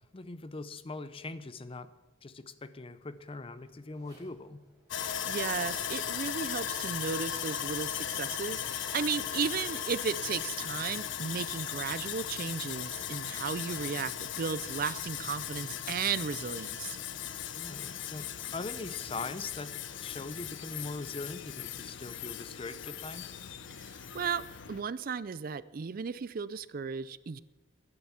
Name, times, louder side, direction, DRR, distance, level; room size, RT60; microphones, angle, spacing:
voice 1, 0.0-1.9 2.2-4.6 17.6-18.3 18.5-19.7 20.0-23.3, left 3 dB, 30° left, 13 dB, 0.6 m, -41 dB
Zipper (clothing), 2.7-15.4, right 1 dB, 20° right, 6.3 m, -61 dB
Sawing, 4.9-24.8, left 9 dB, 70° left, 0.7 m, -37 dB
voice 2, 5.0-17.0 23.8-24.4 24.7-27.4, right 6 dB, 45° right, 17 dB, 0.4 m, -35 dB
12.5 x 11.0 x 7.2 m, 1.1 s
head